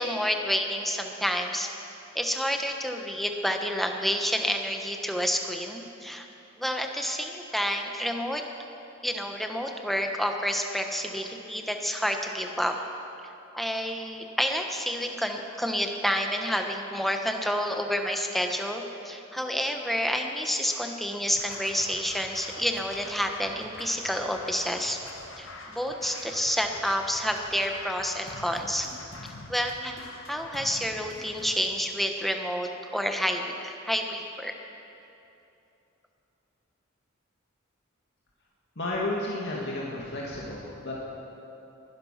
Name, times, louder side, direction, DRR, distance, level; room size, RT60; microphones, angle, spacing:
voice 1, 0.0-1.7 2.1-6.3 6.6-8.5 9.0-12.7 13.5-25.0 25.4-28.9 29.5-30.0 30.3-34.5, equal, ahead, 3 dB, 1.1 m, -29 dB
Scratching (performance technique), 21.3-31.6, left 3 dB, 85° left, 2.0 m, -45 dB
voice 2, 38.8-40.9, left 2 dB, 60° left, -4 dB, 2.3 m, -32 dB
21.0 x 11.5 x 5.8 m, 2.8 s
head